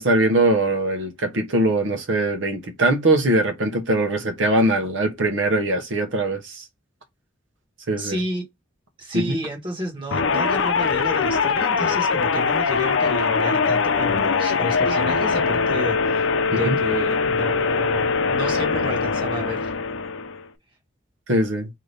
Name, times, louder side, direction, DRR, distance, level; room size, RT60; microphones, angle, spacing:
voice 1, 0.0-6.6 7.9-8.2 9.1-9.4 16.6-16.8 21.3-21.7, right 2 dB, 75° right, 0.9 m, -21 dB
voice 2, 7.9-8.4 9.0-19.7, equal, 25° right, 1.2 m, -31 dB
sound 1, 10.1-20.5, left 5 dB, 80° left, 0.5 m, -22 dB
3.9 x 2.8 x 3.3 m
head